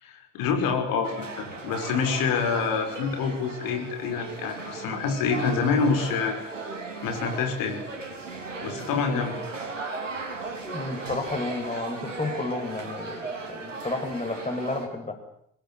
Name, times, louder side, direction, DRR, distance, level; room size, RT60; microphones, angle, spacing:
voice 1, 0.0-6.3 7.0-7.8 8.6-9.3, left 5 dB, 65° left, 4 dB, 5.8 m, -27 dB
sound 1, 1.0-14.9, right 3 dB, 85° right, 2.9 m, -36 dB
voice 2, 10.7-15.1, left 2 dB, 20° left, 5 dB, 7.6 m, -31 dB
26.0 x 20.5 x 9.8 m, 0.70 s
figure-of-eight pair, 45°, 37 cm